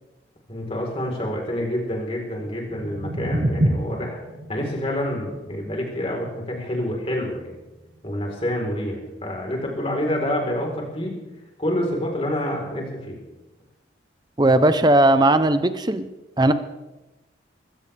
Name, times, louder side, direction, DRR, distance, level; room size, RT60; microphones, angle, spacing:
voice 1, 0.5-4.2 4.5-7.6 8.0-11.2 11.6-13.2, left 1 dB, 30° left, 0 dB, 4.2 m, -27 dB
sound 1, 2.5-8.5, right 1 dB, 75° right, 1.6 m, -29 dB
voice 2, 14.4-16.0 16.4-16.5, right 1 dB, 25° right, 10 dB, 0.8 m, -17 dB
22.0 x 16.5 x 3.5 m, 1.0 s
head